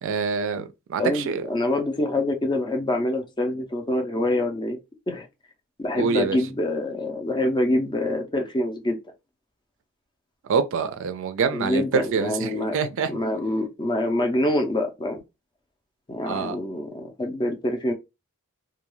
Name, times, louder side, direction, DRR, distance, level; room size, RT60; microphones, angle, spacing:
voice 1, 0.0-1.5 6.0-6.4 10.5-13.2 16.3-16.6, right 5 dB, 60° right, 0.4 m, -26 dB
voice 2, 1.0-4.8 5.1-5.3 5.8-9.0 11.5-12.8 13.1-15.2 16.1-17.9, left 1 dB, 20° left, 0.4 m, -25 dB
2.2 x 2.2 x 3.0 m
head